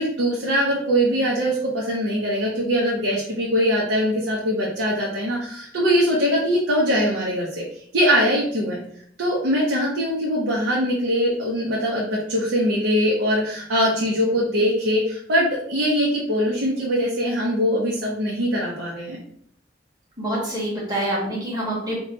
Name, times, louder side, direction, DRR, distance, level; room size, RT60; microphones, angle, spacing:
voice 1, 0.0-7.6 7.9-8.8 9.2-19.2, equal, 85° right, -4 dB, 0.7 m, -22 dB
voice 2, 20.2-21.9, right 1 dB, 20° right, -5 dB, 1.3 m, -26 dB
2.9 x 2.3 x 3.9 m, 0.66 s
head